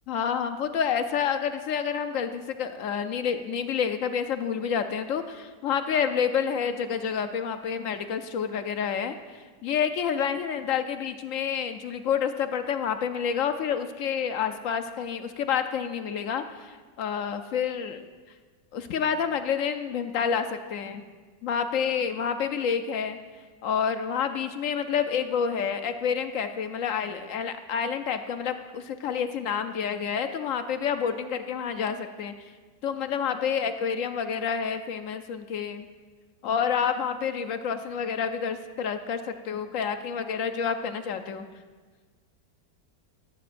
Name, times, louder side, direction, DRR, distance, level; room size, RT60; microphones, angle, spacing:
voice 1, 0.1-18.1 18.7-21.0 21.4-23.2 23.6-32.5 32.8-35.9 36.4-41.5, left 7 dB, 65° left, 9 dB, 0.8 m, -29 dB
16.0 x 14.0 x 2.5 m, 1.4 s
omnidirectional pair, 1.8 m